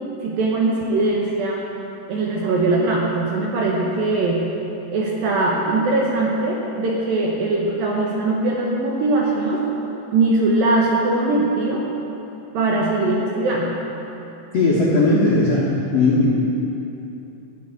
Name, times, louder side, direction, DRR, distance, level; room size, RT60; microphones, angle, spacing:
voice 1, 0.2-1.6 2.1-4.5 4.9-9.6 10.1-11.8 12.5-13.8, right 2 dB, 70° right, -3 dB, 2.2 m, -21 dB
voice 2, 14.5-16.5, left 2 dB, 75° left, -6 dB, 1.4 m, -18 dB
13.5 x 5.5 x 9.4 m, 2.9 s
omnidirectional pair, 5.2 m